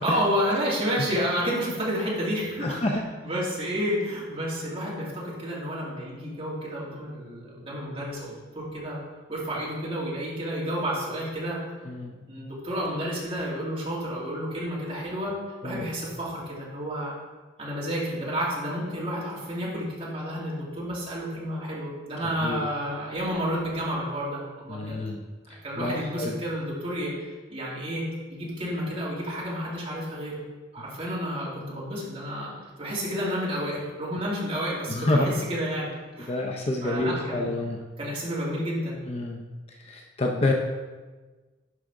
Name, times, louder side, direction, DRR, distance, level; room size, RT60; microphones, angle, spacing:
voice 1, 0.0-2.8 3.2-9.0 9.3-11.6 12.0-15.3 15.6-17.2 17.6-25.0 25.6-27.1 27.5-28.0 28.3-30.4 30.7-32.5 32.8-36.3 36.8-37.6 38.0-39.0, equal, 30° right, -6 dB, 2.2 m, -30 dB
voice 2, 2.6-3.0 11.9-12.2 15.6-15.9 22.4-22.6 24.7-25.2 25.8-26.3 34.9-35.3 36.3-37.8 39.1-39.4 39.7-40.5, left 2 dB, 30° left, 2 dB, 0.5 m, -28 dB
11.5 x 4.9 x 3.6 m, 1.3 s
head